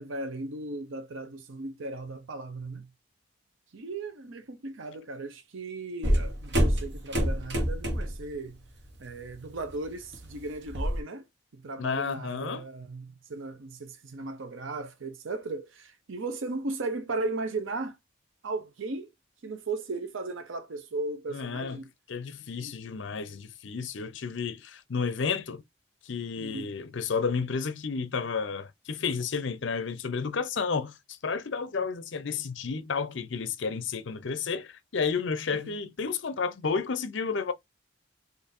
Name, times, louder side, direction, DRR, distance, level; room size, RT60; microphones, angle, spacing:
voice 1, 0.0-2.9 3.7-8.6 9.0-11.2 11.5-18.0 18.4-19.1 19.4-21.8 22.6-22.7 26.4-26.7 35.5-35.8, right 3 dB, 75° right, 0.7 m, -36 dB
sound 1, 6.0-8.3 8.6-9.0 9.3-11.0, equal, 55° right, 1.0 m, -27 dB
voice 2, 11.8-12.6 21.3-21.8 22.1-25.6 26.0-37.5, left 5 dB, 65° left, 0.5 m, -31 dB
3.9 x 2.5 x 2.6 m
head